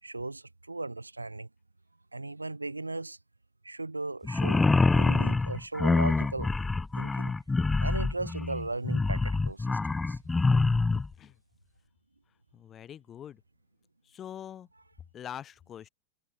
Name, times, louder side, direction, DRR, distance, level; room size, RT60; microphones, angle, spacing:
voice 1, 0.0-1.5 2.1-3.2 3.6-6.5 7.0-7.4 7.8-9.8 10.1-10.2, right 2 dB, 80° right, 5.8 m, -37 dB
sound 1, 4.2-11.1, left 3 dB, 10° left, 0.3 m, -26 dB
voice 2, 10.9-11.4 12.5-13.4 14.1-14.7 15.1-15.9, left 10 dB, 25° left, 5.3 m, -43 dB
figure-of-eight pair, 90°, 0 cm